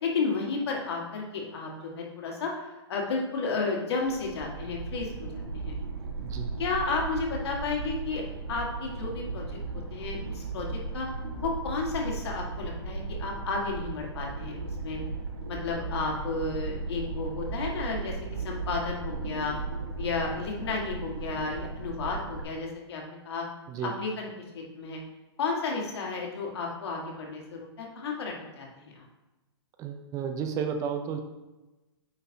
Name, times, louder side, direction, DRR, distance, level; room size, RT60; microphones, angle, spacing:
voice 1, 0.0-2.5 2.9-5.8 6.6-8.2 8.5-9.6 9.9-11.1 11.4-14.6 14.8-15.0 15.5-18.2 18.4-19.6 20.0-23.4 23.8-25.0 25.4-29.0, left 4 dB, 65° left, -1 dB, 1.8 m, -32 dB
sound 1, 4.0-22.4, right 3 dB, 75° right, 1.6 m, -36 dB
voice 2, 6.2-6.6 23.7-23.9 29.8-31.2, right 7 dB, 25° right, 6 dB, 0.5 m, -32 dB
8.9 x 3.9 x 2.8 m, 1.1 s
hypercardioid pair, 125°, 14 cm